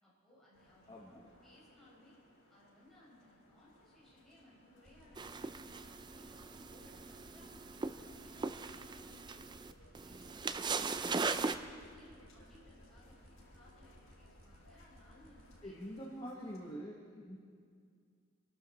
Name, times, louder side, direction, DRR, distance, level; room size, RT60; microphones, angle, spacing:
voice 1, 0.0-2.2 2.5-5.8 6.1-9.6 10.0-11.6 11.9-15.8, left 1 dB, ahead, -8 dB, 5.3 m, -63 dB
sound 1, 0.5-16.8, left 1 dB, 75° left, 5.1 m, -65 dB
voice 2, 0.9-1.3 15.6-17.4, equal, 20° left, -2 dB, 1.2 m, -45 dB
sound 2, 4.7-15.6, equal, 75° right, 2.5 m, -59 dB
sound 3, 5.2-11.6, right 4 dB, 20° right, 0.4 m, -39 dB
25.5 x 12.0 x 4.1 m, 2.1 s
head